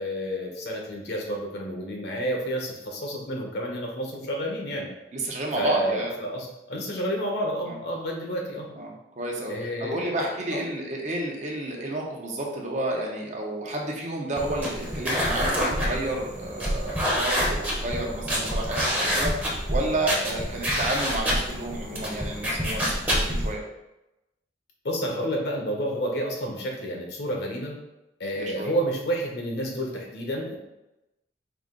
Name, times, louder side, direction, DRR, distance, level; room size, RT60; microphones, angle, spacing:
voice 1, 0.0-4.9 5.6-8.7 9.5-10.6 24.8-27.7 28.2-30.6, equal, 65° left, 0 dB, 1.0 m, -30 dB
voice 2, 5.1-6.1 7.6-7.8 8.8-9.5 9.8-19.3 19.7-23.6 28.3-28.7, right 1 dB, 40° right, -1 dB, 0.8 m, -31 dB
sound 1, 14.4-23.5, equal, 10° right, 0.8 m, -27 dB
4.9 x 2.5 x 3.7 m, 0.95 s
head